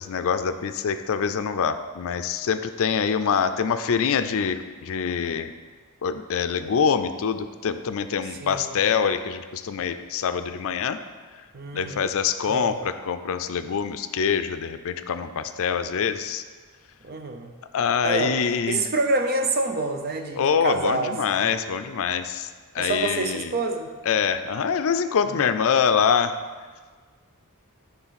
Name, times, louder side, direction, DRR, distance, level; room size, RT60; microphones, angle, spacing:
voice 1, 0.0-5.5 6.0-11.0 11.7-16.4 17.7-18.8 20.4-22.5 22.7-23.5 24.1-26.4, left 6 dB, 65° left, 10 dB, 0.4 m, -25 dB
voice 2, 8.2-8.8 11.5-12.1 12.5-12.8 17.0-17.5 18.0-18.4 18.7-21.4 22.8-23.9 25.2-25.4, right 2 dB, 45° right, 5 dB, 0.7 m, -27 dB
9.6 x 3.9 x 5.7 m, 1.5 s
head